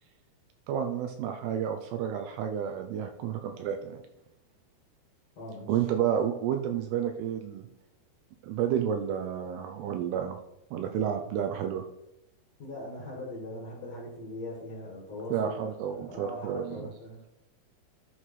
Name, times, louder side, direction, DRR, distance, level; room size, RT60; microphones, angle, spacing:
voice 1, 0.7-4.0 5.7-7.7 8.4-10.4 10.7-11.8 15.3-16.9, right 9 dB, 80° right, 6 dB, 2.5 m, -30 dB
voice 2, 5.4-5.7 12.6-17.2, left 1 dB, 50° left, -3 dB, 2.2 m, -41 dB
11.5 x 6.4 x 3.2 m, 0.88 s
omnidirectional pair, 5.1 m